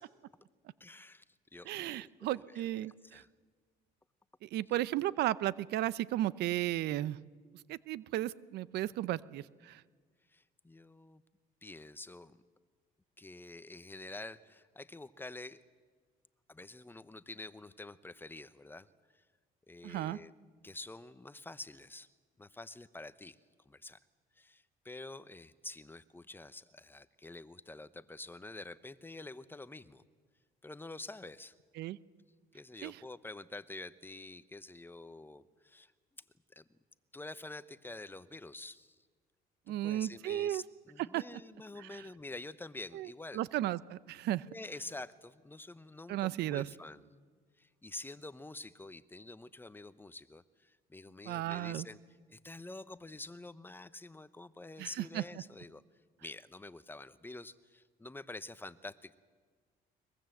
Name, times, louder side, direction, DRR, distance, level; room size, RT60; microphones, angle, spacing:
voice 1, 0.8-1.2 1.5-3.3 10.3-11.2 11.6-12.4 13.2-15.6 16.5-18.9 19.1-19.2 19.7-20.3 20.6-22.1 22.4-23.4 23.7-24.0 24.4-30.0 30.6-31.5 32.5-35.9 36.5-36.6 37.1-38.9 39.7-43.4 44.5-47.0 47.6-52.0 52.3-55.8 56.2-59.2, left 2 dB, 10° left, 15 dB, 0.8 m, -48 dB
voice 2, 1.7-3.2 4.4-7.2 7.7-9.8 19.8-20.2 31.8-32.0 32.8-33.0 39.7-40.6 41.1-41.2 41.8-42.0 42.9-43.1 43.3-44.5 46.1-46.7 51.2-51.9 54.8-55.2, right 14 dB, 75° right, 19 dB, 0.7 m, -34 dB
22.5 x 22.0 x 7.8 m, 1.5 s
cardioid pair, 110°, 17 cm